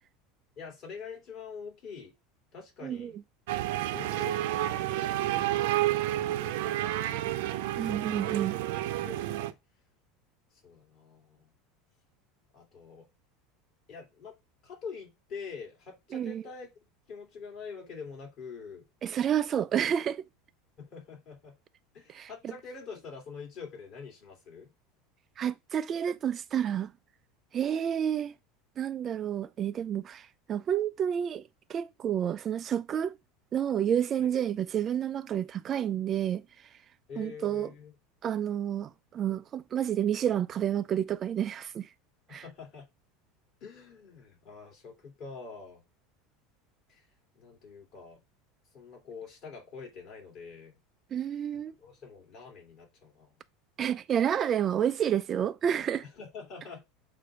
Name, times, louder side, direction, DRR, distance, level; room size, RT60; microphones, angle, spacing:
voice 1, 0.6-2.2 2.5-3.1 3.9-7.4 8.1-9.6 10.6-11.5 12.5-13.0 13.9-14.4 14.6-16.7 17.1-18.8 20.8-21.5 21.9-24.7 34.2-34.3 37.1-37.9 42.3-42.9 43.6-45.8 46.9-47.1 47.3-48.2 48.7-50.8 51.5-53.3 56.0-56.8, left 5 dB, 45° left, 3.1 m, -46 dB
voice 2, 2.8-3.1 7.8-8.5 16.1-16.4 19.0-20.2 22.1-22.3 25.4-26.9 27.5-28.3 28.8-31.4 31.7-33.1 33.5-36.4 37.2-37.7 38.2-41.9 42.3-42.4 51.1-51.7 53.8-56.0, right 9 dB, 30° right, 0.3 m, -29 dB
sound 1, 3.5-9.5, right 14 dB, 80° right, 0.7 m, -30 dB
7.6 x 2.6 x 5.0 m
supercardioid pair, 145°, 0 cm